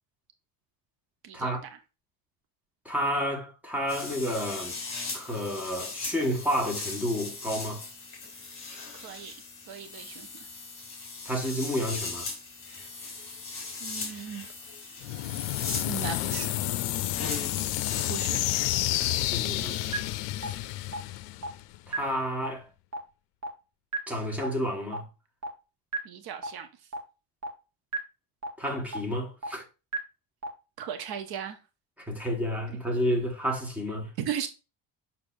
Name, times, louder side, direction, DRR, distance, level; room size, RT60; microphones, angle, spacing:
voice 1, 2.8-4.7 5.1-7.8 11.2-12.3 19.1-20.0 20.4-20.6 21.9-22.7 24.1-25.0 28.6-29.6 32.1-34.1, equal, 5° right, 1.4 m, -30 dB
sound 1, 3.9-19.9, left 4 dB, 30° left, 3.4 m, -39 dB
voice 2, 9.0-9.3 9.7-10.3 13.8-14.5 15.9-16.5 18.1-18.4 26.0-26.7 30.8-31.6 34.2-34.5, right 8 dB, 60° right, 0.8 m, -36 dB
sound 2, 15.0-21.9, left 16 dB, 85° left, 0.5 m, -30 dB
sound 3, 19.9-20.0 20.4-20.5 20.9-21.0 21.4-21.5 21.9-22.0 22.4-22.5 22.9-23.0 23.4-23.5 23.9-24.0 24.4-24.5 24.9-25.0 25.4-25.5 25.9-26.0 26.4-26.5 26.9-27.0 27.4-27.5 27.9-28.0 28.4-28.5 28.9-29.0 29.4-29.5 29.9-30.0 30.4-30.5, right 3 dB, 40° right, 1.2 m, -31 dB
6.6 x 5.8 x 2.6 m
cardioid pair, 165°, 42 cm